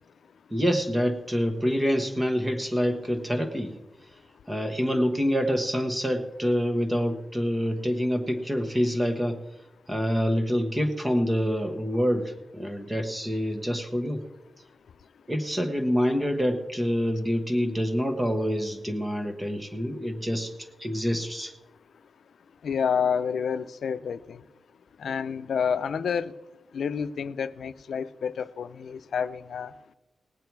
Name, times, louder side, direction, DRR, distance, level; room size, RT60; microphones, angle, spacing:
voice 1, 0.5-3.7 4.5-9.4 9.9-14.2 15.3-21.5, equal, 15° right, 5 dB, 1.1 m, -26 dB
voice 2, 22.6-24.4 25.0-26.3 26.7-29.7, left 7 dB, 85° left, 13 dB, 0.5 m, -29 dB
18.5 x 8.7 x 4.6 m, 1.0 s
wide cardioid pair, 145°, 0 cm